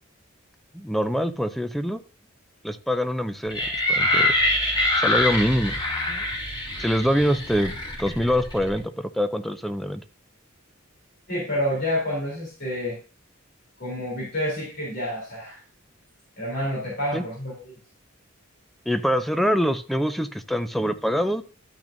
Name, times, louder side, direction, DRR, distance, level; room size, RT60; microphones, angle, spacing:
voice 1, 0.7-2.0 2.6-3.6 3.9-4.3 5.0-5.7 6.1-6.2 6.8-7.7 8.0-10.0 17.1-17.2 18.9-21.4, equal, ahead, 10 dB, 0.4 m, -24 dB
sound 1, 3.5-8.8, left 1 dB, 25° left, 3.9 m, -25 dB
voice 2, 11.3-13.0 13.8-15.6 16.4-17.7, left 1 dB, 55° left, -5 dB, 3.3 m, -28 dB
12.0 x 6.0 x 2.6 m, 0.38 s
head